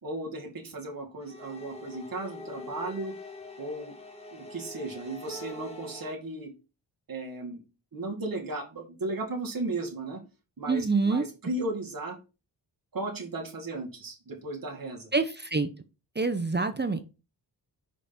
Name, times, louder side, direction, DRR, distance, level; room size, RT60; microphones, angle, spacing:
voice 1, 0.0-3.1 3.6-4.0 4.3-6.5 7.1-7.6 7.9-10.2 10.6-12.2 12.9-15.1, right 2 dB, 50° right, 0 dB, 2.2 m, -35 dB
sound 1, 1.2-6.1, left 1 dB, 15° left, 2.1 m, -43 dB
voice 2, 10.7-11.2 15.1-15.7 16.2-17.0, right 3 dB, 25° right, 10 dB, 0.7 m, -26 dB
5.2 x 5.1 x 4.3 m, 0.31 s
cardioid pair, 60°, 44 cm